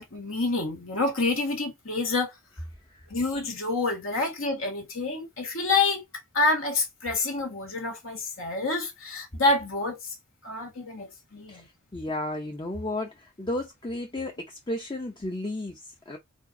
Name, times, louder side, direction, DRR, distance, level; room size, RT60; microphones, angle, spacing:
voice 1, 0.0-2.3 3.1-6.0 6.3-10.1 10.4-11.7, left 3 dB, 70° left, 2.0 m, -28 dB
voice 2, 11.9-16.2, left 1 dB, 20° left, 0.7 m, -33 dB
4.5 x 3.9 x 2.7 m
head